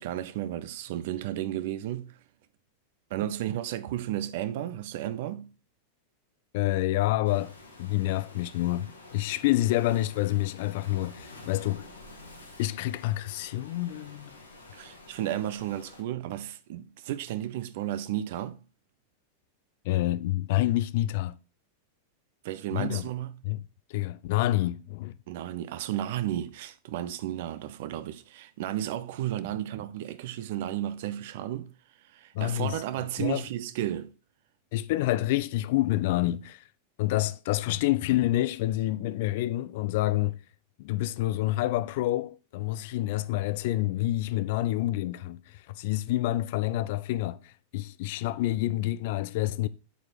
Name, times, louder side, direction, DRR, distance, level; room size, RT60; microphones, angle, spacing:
voice 1, 0.0-2.2 3.1-5.5 14.7-18.6 22.4-23.4 25.3-31.7 32.1-34.1, right 12 dB, 50° right, 0.7 m, -33 dB
voice 2, 6.5-7.5 7.8-11.9 12.6-14.3 19.8-21.4 22.7-23.0 23.4-23.6 23.9-25.2 32.3-32.8 33.2-33.4 34.7-36.6 37.0-40.4 40.8-49.7, left 16 dB, 50° left, 0.4 m, -28 dB
Waves surf, 7.3-16.0, left 2 dB, 75° left, 1.7 m, -49 dB
8.0 x 4.9 x 4.2 m
figure-of-eight pair, 90°, 0 cm